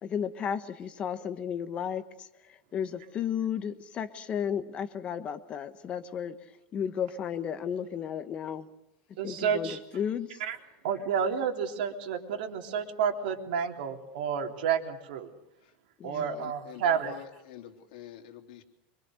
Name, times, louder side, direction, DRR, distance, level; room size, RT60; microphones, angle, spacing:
voice 1, 0.0-2.0 2.7-6.3 6.7-8.7 9.2-10.3 16.0-16.5, left 8 dB, 25° left, 10 dB, 1.1 m, -33 dB
voice 2, 9.2-9.8 10.4-10.6 10.8-15.3 16.0-17.2, right 7 dB, 80° right, 3 dB, 3.6 m, -30 dB
voice 3, 16.2-18.6, left 11 dB, 70° left, 3 dB, 3.5 m, -47 dB
25.5 x 25.0 x 6.5 m, 0.81 s
supercardioid pair, 180°, 5 cm